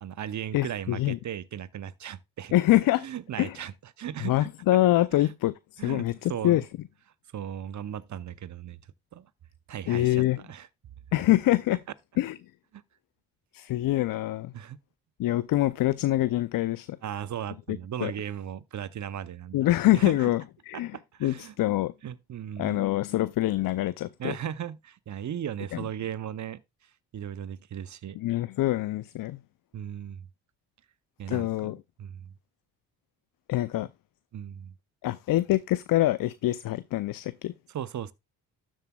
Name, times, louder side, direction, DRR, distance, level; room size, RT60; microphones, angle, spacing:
voice 1, 0.0-2.5 3.0-4.5 5.1-5.3 5.8-6.6 7.3-8.8 9.1-9.3 9.7-10.7 12.7-12.8 14.5-14.8 17.0-20.3 20.7-21.5 22.0-22.9 24.2-26.6 27.1-28.2 29.7-30.3 31.2-32.3 34.3-34.7 37.7-38.1, right 9 dB, 45° right, 0.7 m, -37 dB
voice 2, 0.5-1.2 2.5-3.1 3.4-3.6 4.2-6.6 9.9-10.4 11.1-11.8 12.2-12.4 13.5-14.5 15.2-17.0 17.7-18.1 19.5-20.9 21.2-21.9 22.6-24.3 25.7-25.8 28.2-29.4 31.3-31.8 33.5-33.9 35.0-37.5, left 15 dB, 55° left, 0.5 m, -25 dB
12.5 x 7.5 x 2.3 m
hypercardioid pair, 50°, 41 cm